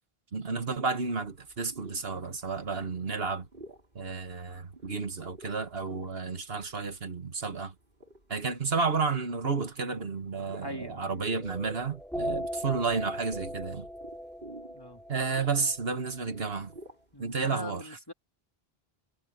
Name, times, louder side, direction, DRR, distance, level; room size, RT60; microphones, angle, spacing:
voice 1, 0.3-3.5 4.0-7.7 8.3-13.9 15.1-16.7 17.2-17.8, right 4 dB, 70° right, 1.8 m, -31 dB
sound 1, 1.2-17.3, right 2 dB, 55° right, 6.4 m, -53 dB
voice 2, 10.6-11.2 14.7-15.0 17.1-18.1, left 1 dB, 20° left, 2.6 m, -41 dB
sound 2, 11.4-16.3, equal, ahead, 4.4 m, -38 dB
omnidirectional pair, 1.0 m